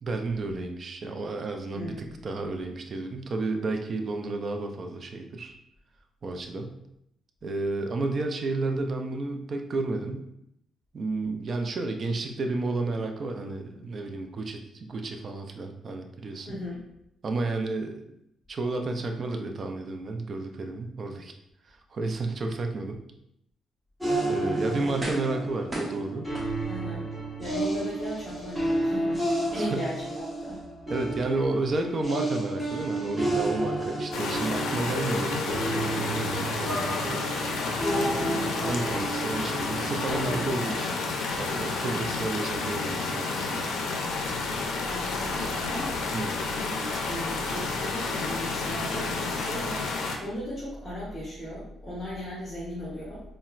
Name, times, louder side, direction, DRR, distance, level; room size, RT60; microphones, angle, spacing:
voice 1, 0.0-5.6 6.2-6.8 7.4-10.3 10.9-16.5 17.2-18.0 18.5-21.3 21.7-23.0 24.3-26.3 29.5-29.9 30.9-37.3 38.1-40.9 41.4-43.7 46.1-46.3, right 3 dB, 45° right, 4 dB, 0.4 m, -31 dB
voice 2, 1.7-2.2 16.5-16.8 24.7-24.8 26.7-27.1 27.4-29.2 29.5-30.6 31.3-31.4 38.4-38.8 40.1-40.6 44.8-46.0 46.5-49.8 50.2-53.2, equal, 15° left, -7 dB, 1.1 m, -37 dB
Sadnes piano vox, 24.0-40.5, right 1 dB, 10° right, 1.3 m, -31 dB
sound 1, 25.0-25.4 25.7-27.0 27.5-27.6, right 1 dB, 25° right, 0.7 m, -37 dB
sound 2, 34.1-50.2, left 3 dB, 85° left, 0.4 m, -30 dB
4.0 x 2.1 x 2.4 m, 0.78 s
cardioid pair, 90°, 0 cm